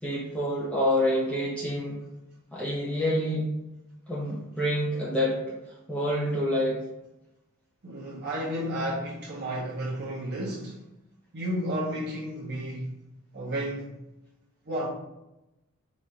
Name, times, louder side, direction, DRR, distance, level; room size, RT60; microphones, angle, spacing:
voice 1, 0.0-2.0 2.5-3.5 4.1-5.4 5.9-6.8, equal, 5° left, 0.7 m, -27 dB
voice 2, 7.8-10.8 11.3-12.9 13.3-13.9 14.7-14.9, equal, 50° right, 0.8 m, -32 dB
4.1 x 2.5 x 4.5 m
head